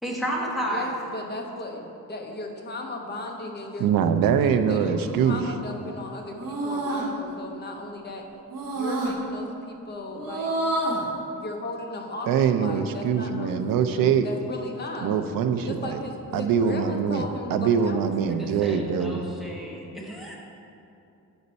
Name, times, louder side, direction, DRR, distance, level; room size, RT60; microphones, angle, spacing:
voice 1, 0.0-0.9 18.3-20.4, equal, ahead, -4 dB, 1.0 m, -32 dB
voice 2, 0.6-3.9 4.4-8.2 8.7-10.5 11.3-13.6 13.8-15.2 15.6-18.4, left 2 dB, 30° left, 1 dB, 0.8 m, -36 dB
voice 3, 3.8-5.4 12.3-14.3 15.0-16.0 16.3-19.3, right 7 dB, 90° right, 9 dB, 0.5 m, -23 dB
sound 1, 5.0-5.5 6.4-7.1 8.5-9.1 10.1-11.1, right 2 dB, 70° right, 1.2 m, -28 dB
8.0 x 5.3 x 4.1 m, 2.8 s
wide cardioid pair, 160°, 33 cm